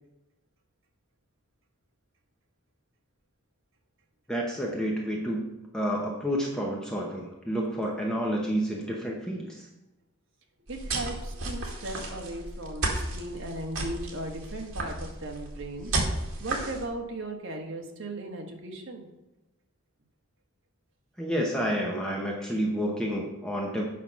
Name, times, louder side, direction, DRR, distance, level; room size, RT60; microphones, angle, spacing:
voice 1, 4.3-5.5 5.7-9.7 21.2-23.8, equal, 5° left, -2 dB, 0.9 m, -29 dB
voice 2, 10.7-19.1, right 1 dB, 55° right, 2 dB, 1.4 m, -37 dB
sound 1, 10.7-16.9, right 2 dB, 75° right, 2.0 m, -33 dB
8.4 x 5.5 x 5.8 m, 1.0 s
head